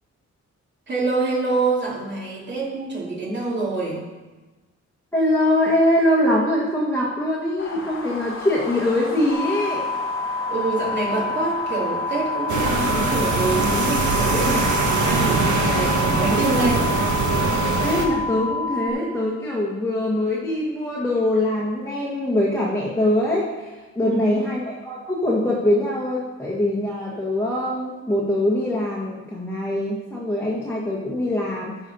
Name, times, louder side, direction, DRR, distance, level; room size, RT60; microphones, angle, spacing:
voice 1, 0.9-4.0 10.5-14.8 15.0-16.9 24.0-24.4, right 3 dB, 40° right, -4 dB, 2.7 m, -25 dB
voice 2, 5.1-9.8 17.8-31.8, left 1 dB, 10° left, -5 dB, 1.4 m, -23 dB
sound 1, 7.6-16.4, left 2 dB, 45° left, 1.4 m, -34 dB
sound 2, 9.3-18.9, left 3 dB, 80° left, 1.2 m, -28 dB
sound 3, 12.5-18.1, right 3 dB, 80° right, 1.3 m, -22 dB
12.5 x 4.3 x 5.5 m, 1.2 s
wide cardioid pair, 125°, 29 cm